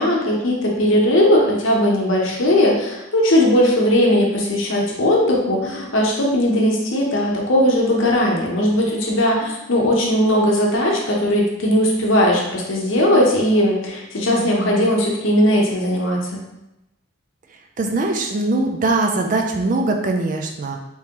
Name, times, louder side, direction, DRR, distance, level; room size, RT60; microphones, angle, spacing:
voice 1, 0.0-16.4, left 1 dB, 65° left, -1 dB, 0.8 m, -18 dB
voice 2, 14.3-14.9 17.8-20.8, right 2 dB, 35° right, 3 dB, 0.3 m, -22 dB
3.6 x 2.9 x 2.9 m, 0.93 s
head